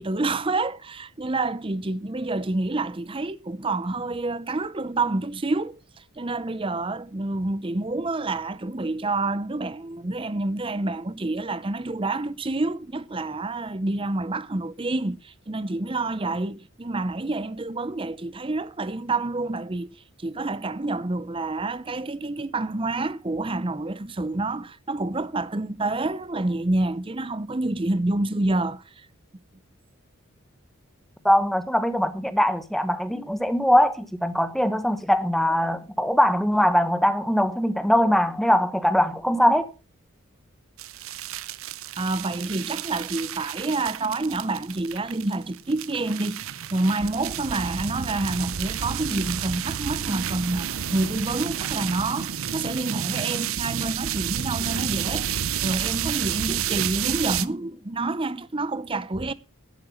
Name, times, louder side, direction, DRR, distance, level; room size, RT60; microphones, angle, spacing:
voice 1, 0.0-5.8 6.2-19.9 20.2-28.8 42.0-46.4 46.7-59.3, right 2 dB, 25° right, 0.6 m, -28 dB
voice 2, 31.2-39.7, equal, ahead, 1.0 m, -21 dB
sound 1, 40.8-57.5, right 9 dB, 70° right, 0.6 m, -30 dB
12.0 x 7.8 x 5.8 m
head